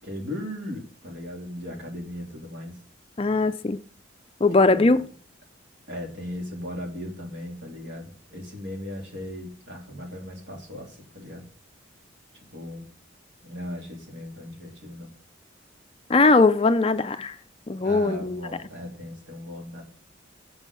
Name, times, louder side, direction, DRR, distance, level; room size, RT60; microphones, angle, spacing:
voice 1, 0.0-2.7 4.6-5.0 5.9-11.5 12.5-12.8 13.4-15.1 17.8-19.8, left 1 dB, 60° right, 3.1 m, -37 dB
voice 2, 3.2-3.8 4.4-5.0 16.1-17.4 17.7-18.4, left 3 dB, 30° left, 0.4 m, -20 dB
7.4 x 6.1 x 6.7 m
head